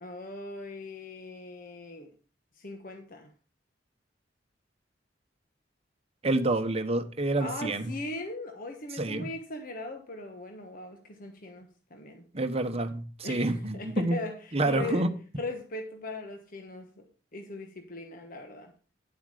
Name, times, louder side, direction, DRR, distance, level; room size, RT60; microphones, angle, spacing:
voice 1, 0.0-2.1 2.5-3.3 7.4-12.2 13.2-15.1 15.4-17.1 17.3-18.7, left 2 dB, 50° left, 1.3 m, -39 dB
voice 2, 6.2-7.9 9.0-9.3 12.3-14.2 14.5-15.1, right 2 dB, 35° right, 1.0 m, -28 dB
10.5 x 8.0 x 4.9 m
head